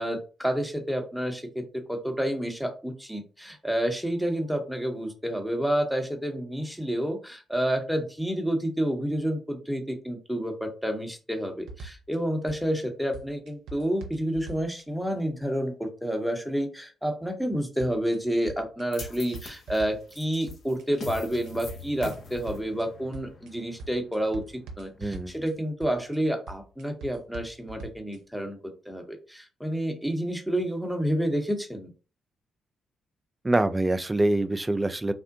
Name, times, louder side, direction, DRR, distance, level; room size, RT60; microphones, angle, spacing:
voice 1, 0.0-28.6 28.9-31.9, equal, ahead, 0.8 m, -29 dB
sound 1, 11.7-12.2 12.5-12.8 13.1-14.8 17.8-18.2 18.5-20.2 20.5-20.8 21.1-22.8 23.1-23.5 23.8-25.5 25.8-26.2 26.5-28.2, right 3 dB, 70° right, 0.6 m, -42 dB
sound 2, 18.9-25.2, left 4 dB, 55° left, 0.8 m, -44 dB
voice 2, 25.0-25.4 33.4-35.1, right 2 dB, 20° right, 0.3 m, -25 dB
3.5 x 2.1 x 2.6 m
hypercardioid pair, 45°, 0 cm